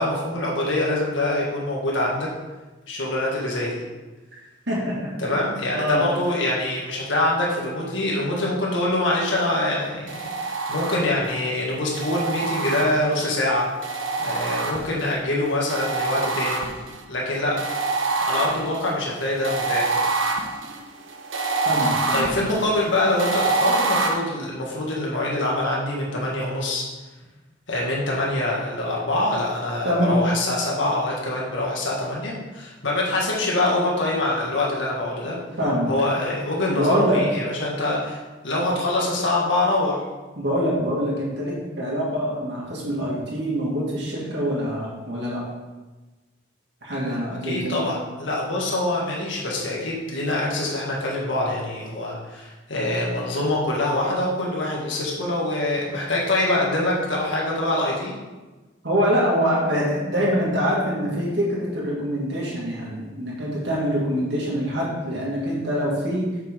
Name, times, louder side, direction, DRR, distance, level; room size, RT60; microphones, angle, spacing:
voice 1, 0.0-2.3 2.9-3.8 5.2-13.7 14.2-16.7 17.1-17.7 18.2-20.1 22.1-26.8 27.7-35.4 35.9-38.2 38.4-40.0 47.4-58.1, left 1 dB, 85° left, -3 dB, 1.8 m, -24 dB
voice 2, 4.7-5.0 5.3-5.4 5.7-6.1 21.7-22.3 29.8-30.2 35.2-35.3 35.6-35.9 36.7-37.2 40.4-45.4 46.8-47.9 58.8-66.3, equal, 65° right, -5 dB, 2.3 m, -24 dB
sound 1, 10.1-11.3 11.9-13.3 13.8-15.2 15.7-17.0 17.6-24.1, right 3 dB, 90° right, 0.9 m, -26 dB
7.9 x 5.9 x 3.7 m, 1.2 s
head